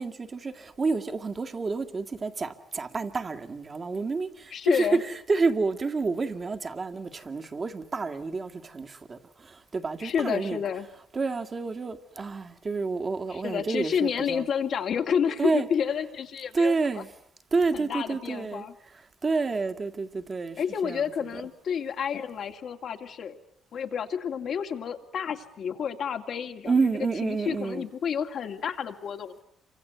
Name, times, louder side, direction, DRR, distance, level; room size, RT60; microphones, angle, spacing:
voice 1, 0.0-5.0 5.3-10.6 11.1-14.4 15.4-15.7 16.5-17.1 17.5-18.7 19.2-21.0 21.3-21.4 26.7-27.9, right 4 dB, 35° right, 2.1 m, -29 dB
voice 2, 4.5-5.0 10.0-10.9 13.3-17.0 17.7-18.7 20.6-23.4 23.7-26.9 27.2-29.4, left 7 dB, 65° left, 2.5 m, -30 dB
28.5 x 25.5 x 8.0 m
cardioid pair, 85°, 0 cm